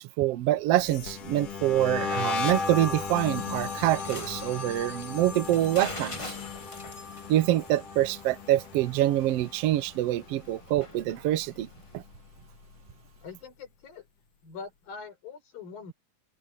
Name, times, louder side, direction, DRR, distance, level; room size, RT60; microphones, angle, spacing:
voice 1, 0.0-6.4 7.3-11.7 11.9-12.0, right 14 dB, 75° right, 1.4 m, -26 dB
sound 1, 0.8-9.9 10.2-10.7 11.0-12.5, left 4 dB, 65° left, 3.8 m, -36 dB
sound 2, 1.8-12.0, left 2 dB, 35° left, 0.4 m, -46 dB
voice 2, 13.2-14.1 14.4-15.9, left 5 dB, 85° left, 7.8 m, -43 dB
open air
omnidirectional pair, 4.0 m